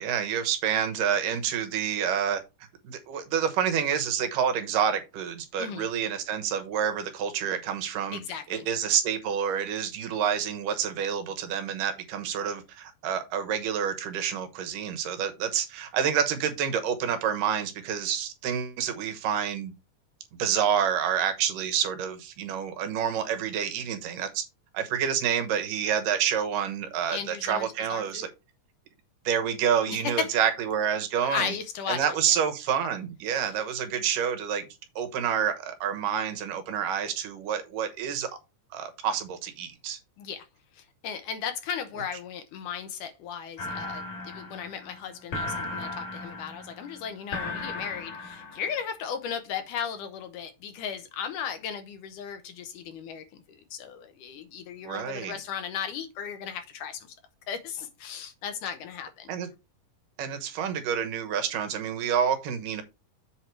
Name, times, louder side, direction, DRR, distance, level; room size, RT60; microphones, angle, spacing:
voice 1, 0.0-2.4 2.8-8.2 8.5-19.7 20.4-24.4 24.7-28.3 29.3-31.5 31.9-34.6 35.0-38.3 38.7-40.0 54.8-55.4 59.3-59.5 60.2-62.8, right 8 dB, 90° right, 2.8 m, -28 dB
voice 2, 8.1-8.7 27.1-28.3 29.9-30.4 31.2-32.1 40.2-40.5 40.7-57.1 57.5-59.3, left 7 dB, 80° left, 2.4 m, -36 dB
sound 1, 43.6-48.8, left 2 dB, 65° left, 3.0 m, -36 dB
7.8 x 4.5 x 4.7 m
omnidirectional pair, 3.7 m